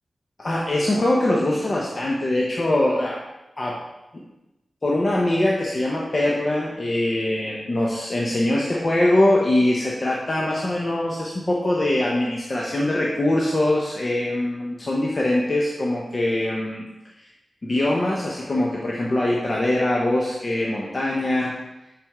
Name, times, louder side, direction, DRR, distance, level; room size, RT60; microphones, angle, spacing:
voice 1, 0.4-3.2 3.6-3.8 4.8-16.8 17.6-21.5, left 1 dB, 50° left, -3 dB, 0.9 m, -22 dB
5.9 x 5.2 x 3.6 m, 0.97 s
cardioid pair, 50°, 0 cm